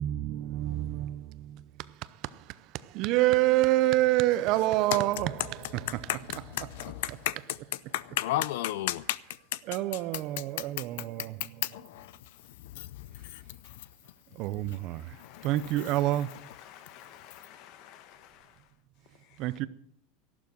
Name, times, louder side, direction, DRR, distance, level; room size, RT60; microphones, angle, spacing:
voice 1, 0.0-6.7 7.1-7.2 9.6-11.6 14.3-16.3 19.4-19.7, right 16 dB, 40° right, 0.6 m, -28 dB
voice 2, 6.5-7.4 7.9-9.2 11.6-12.1 12.7-12.9 13.2-13.4 15.2-15.5, left 15 dB, 70° left, 0.5 m, -32 dB
voice 3, 14.9-18.7 19.2-19.4, left 10 dB, 45° left, 1.3 m, -52 dB
13.5 x 12.0 x 6.2 m
supercardioid pair, 165°, 0 cm